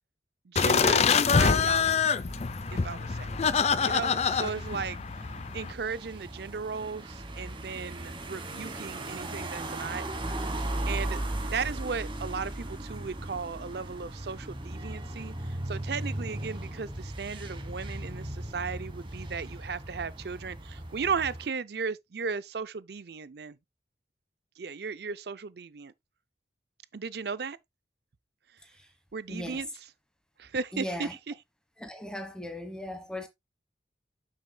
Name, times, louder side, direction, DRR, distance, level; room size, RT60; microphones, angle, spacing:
sound 1, 0.5-5.7, left 6 dB, 35° left, 0.4 m, -25 dB
voice 1, 0.5-2.1 2.7-3.3 3.8-5.0 5.5-10.1 10.9-23.6 24.6-25.9 26.9-27.6 29.1-29.7 30.4-31.1, right 5 dB, 60° right, 0.5 m, -36 dB
sound 2, 2.3-21.5, right 1 dB, 30° right, 1.3 m, -38 dB
voice 2, 29.3-29.6 30.7-31.2 31.8-33.3, left 1 dB, 5° left, 1.2 m, -38 dB
8.7 x 7.2 x 2.3 m
head